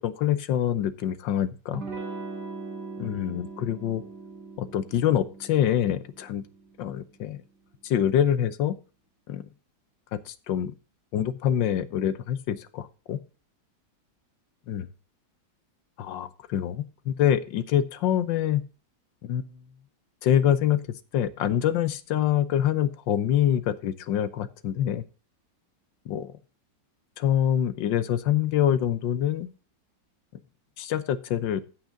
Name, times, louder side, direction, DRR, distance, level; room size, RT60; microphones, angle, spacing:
voice 1, 0.0-1.8 3.0-4.0 4.6-6.4 6.8-7.4 7.8-8.7 9.3-9.4 10.1-10.7 11.1-13.2 14.7-14.9 16.0-18.6 19.2-19.6 20.2-25.0 26.1-26.3 27.2-29.5 30.8-31.6, left 10 dB, 90° left, 14 dB, 1.5 m, -25 dB
Electric guitar / Strum, 1.7-7.1, right 4 dB, 65° right, 2.9 m, -40 dB
15.5 x 5.9 x 3.8 m, 0.34 s
omnidirectional pair, 2.0 m